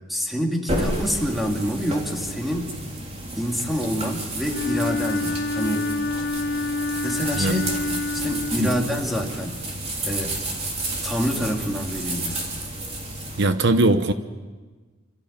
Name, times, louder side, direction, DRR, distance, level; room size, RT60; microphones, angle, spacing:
voice 1, 0.1-2.7 3.4-5.9 7.0-7.6 7.9-9.6 10.0-10.3 11.0-12.4, equal, ahead, 1 dB, 2.5 m, -27 dB
sound 1, 0.7-13.4, right 1 dB, 30° right, 3.5 m, -31 dB
Wind instrument woodwind instrument, 4.4-9.2, left 3 dB, 55° left, 1.2 m, -28 dB
voice 2, 7.4-7.7 8.6-8.7 13.4-14.1, right 2 dB, 60° right, 10 dB, 0.9 m, -20 dB
27.5 x 14.0 x 8.7 m, 1.3 s
head